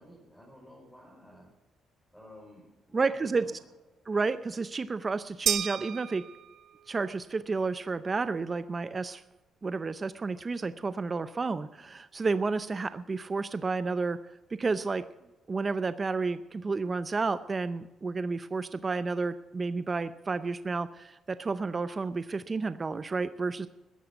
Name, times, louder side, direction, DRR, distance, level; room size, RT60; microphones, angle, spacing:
voice 1, 0.0-1.5 2.1-3.6, left 1 dB, ahead, -3 dB, 4.5 m, -52 dB
voice 2, 2.9-3.4 4.1-6.2 6.9-9.2 9.6-14.2 14.6-15.0 15.5-23.7, right 4 dB, 30° right, 13 dB, 0.6 m, -31 dB
sound 1, 5.5-6.9, right 9 dB, 70° right, 0.7 m, -32 dB
14.5 x 10.0 x 7.0 m, 1.0 s
cardioid pair, 90°, 0 cm